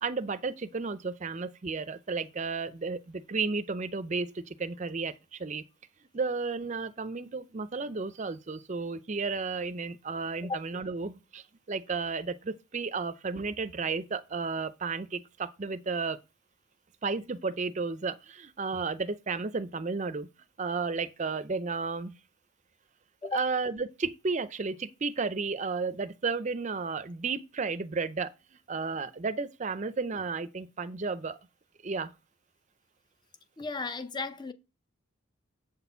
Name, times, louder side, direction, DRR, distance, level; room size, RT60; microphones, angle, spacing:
voice 1, 0.0-5.6 6.1-16.2 17.0-20.3 20.6-22.1 23.2-28.3 28.7-31.4 31.8-32.1, right 4 dB, 35° right, 0.5 m, -33 dB
voice 2, 33.6-34.5, left 3 dB, 20° left, 0.5 m, -34 dB
7.5 x 4.2 x 5.6 m
head